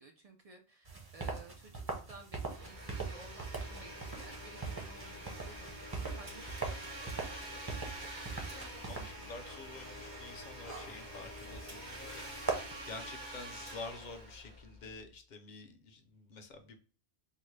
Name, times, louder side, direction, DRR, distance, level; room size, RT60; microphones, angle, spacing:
voice 1, 0.0-7.2 7.5-7.9, right 3 dB, 70° right, 4 dB, 0.3 m, -55 dB
sound 1, 0.8-12.7, right 4 dB, 25° right, 0.5 m, -42 dB
Domestic sounds home sounds, 2.4-15.0, right 1 dB, 90° right, 1.8 m, -47 dB
sound 2, 3.5-13.1, left 8 dB, 70° left, 1.0 m, -58 dB
voice 2, 8.9-12.3 12.8-16.8, left 3 dB, 50° left, 6 dB, 0.6 m, -48 dB
3.8 x 2.0 x 3.1 m, 0.40 s
omnidirectional pair, 1.2 m